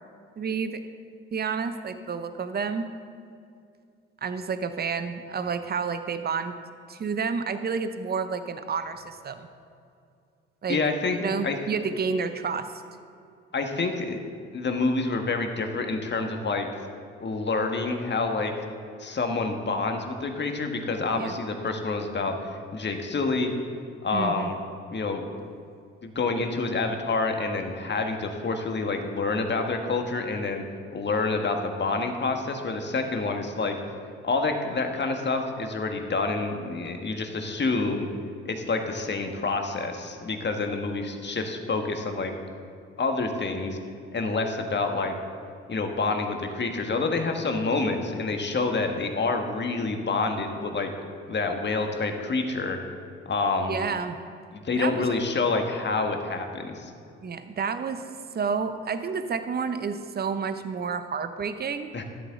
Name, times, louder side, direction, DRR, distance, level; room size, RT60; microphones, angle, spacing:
voice 1, 0.4-0.8 1.3-2.9 4.2-6.5 6.9-9.5 10.6-10.8 11.2-12.7 21.2-21.3 24.1-24.5 53.7-54.2 54.8-55.1 57.2-58.1 58.3-61.9, right 5 dB, 30° right, 10 dB, 0.9 m, -30 dB
voice 2, 10.7-11.2 11.4-11.6 13.5-14.2 14.5-16.7 17.2-18.5 19.0-23.5 24.0-24.6 24.9-25.3 26.0-30.6 30.9-33.8 34.2-38.1 38.4-42.3 43.0-43.8 44.1-45.1 45.7-50.9 51.3-52.8 53.2-53.8 54.5-56.9 61.9-62.0, left 3 dB, 35° left, 4 dB, 1.6 m, -27 dB
13.0 x 10.5 x 3.8 m, 2.4 s
hypercardioid pair, 45°, 30 cm